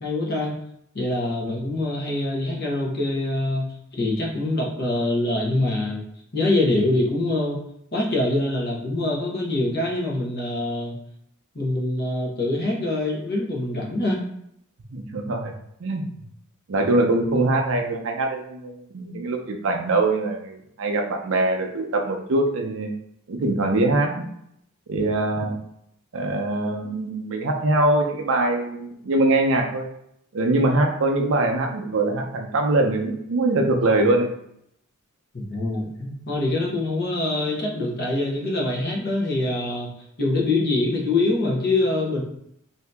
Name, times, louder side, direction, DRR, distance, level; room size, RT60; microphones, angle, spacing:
voice 1, 0.0-0.5 0.9-6.0 6.3-7.6 7.9-11.0 11.5-14.2 35.3-39.9 40.2-42.2, left 2 dB, 45° left, -3 dB, 0.9 m, -24 dB
voice 2, 14.9-15.5 15.8-16.1 16.7-22.9 23.3-24.2 24.9-25.5 26.1-29.9 30.3-34.3, right 2 dB, 60° right, 3 dB, 0.5 m, -23 dB
2.7 x 2.7 x 3.4 m, 0.74 s
head